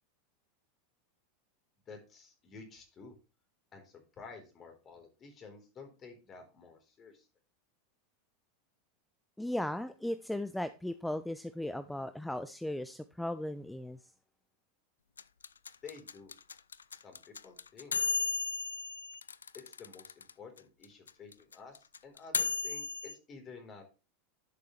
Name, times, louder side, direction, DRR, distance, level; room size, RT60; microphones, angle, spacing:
voice 1, 1.9-3.1 3.7-7.3 15.8-16.3 17.0-17.9 19.5-23.8, left 5 dB, 30° left, 4.0 m, -51 dB
voice 2, 9.4-14.0, left 1 dB, 5° left, 0.6 m, -37 dB
sound 1, 15.2-20.3 20.6-20.7 20.8-23.1, left 5 dB, 85° left, 0.4 m, -34 dB
12.0 x 6.7 x 3.3 m
hypercardioid pair, 90°, 0 cm